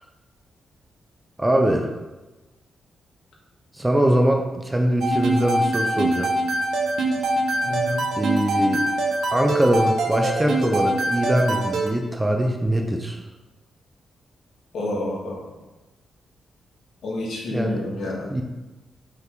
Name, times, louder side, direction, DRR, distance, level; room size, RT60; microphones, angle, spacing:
voice 1, 1.4-1.9 3.7-6.3 8.2-8.9 9.3-13.2 17.5-17.8 18.3-18.4, right 1 dB, 10° right, 3 dB, 0.5 m, -22 dB
sound 1, 5.0-11.9, right 2 dB, 75° right, 0.9 m, -24 dB
voice 2, 7.6-8.0 14.7-15.4 17.0-18.3, left 1 dB, 70° left, -3 dB, 1.7 m, -29 dB
5.5 x 4.1 x 4.6 m, 1.1 s
wide cardioid pair, 155°, 0 cm